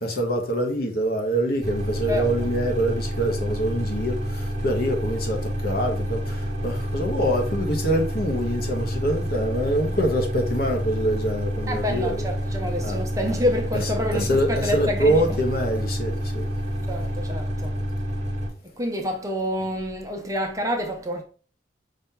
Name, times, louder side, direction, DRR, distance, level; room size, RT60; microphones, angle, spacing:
voice 1, 0.0-12.3 12.8-13.0 14.1-16.4, right 1 dB, 50° left, 0.9 m, -25 dB
sound 1, 1.6-18.5, equal, 35° right, 1.3 m, -28 dB
voice 2, 2.1-2.5 11.7-15.4 16.9-17.8 18.8-21.2, left 1 dB, 15° right, 0.6 m, -28 dB
5.2 x 2.8 x 3.6 m
head